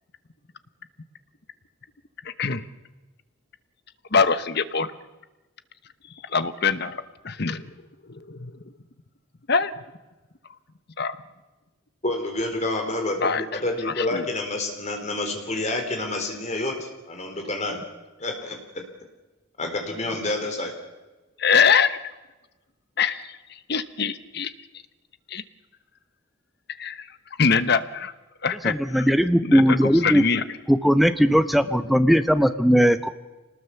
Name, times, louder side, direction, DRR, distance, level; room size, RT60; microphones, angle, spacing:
voice 1, 2.2-2.6 4.1-4.9 6.3-7.6 8.1-8.5 9.5-9.7 11.0-11.2 13.2-13.4 13.9-14.3 21.4-22.0 23.0-23.2 23.7-24.5 25.3-25.4 26.8-27.0 27.4-28.1 28.4-29.1 29.4-30.4, left 5 dB, 50° left, 12 dB, 1.1 m, -23 dB
voice 2, 12.0-17.8 18.2-18.8 19.6-20.7, left 2 dB, 35° left, 3 dB, 3.8 m, -28 dB
voice 3, 28.6-30.2 30.7-33.1, equal, ahead, 10 dB, 0.8 m, -18 dB
26.0 x 19.5 x 7.1 m, 1.1 s
head